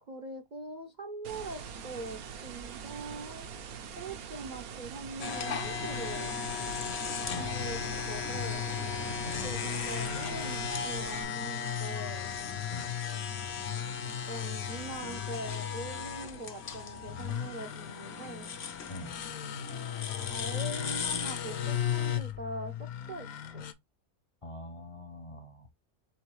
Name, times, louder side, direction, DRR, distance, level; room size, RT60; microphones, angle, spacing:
voice 1, 0.1-3.5 4.0-6.3 7.3-7.8 8.0-8.6 9.4-12.3 14.2-18.5 20.2-23.3 23.5-23.6, right 2 dB, 45° right, 0.6 m, -42 dB
sound 1, 1.2-11.2, right 7 dB, 75° right, 1.2 m, -43 dB
sound 2, 5.2-22.2, left 7 dB, 55° left, 0.9 m, -36 dB
sound 3, 7.1-23.7, left 9 dB, 80° left, 1.1 m, -41 dB
voice 2, 24.4-25.7, left 1 dB, 40° left, 0.5 m, -44 dB
4.5 x 3.7 x 3.1 m
omnidirectional pair, 1.6 m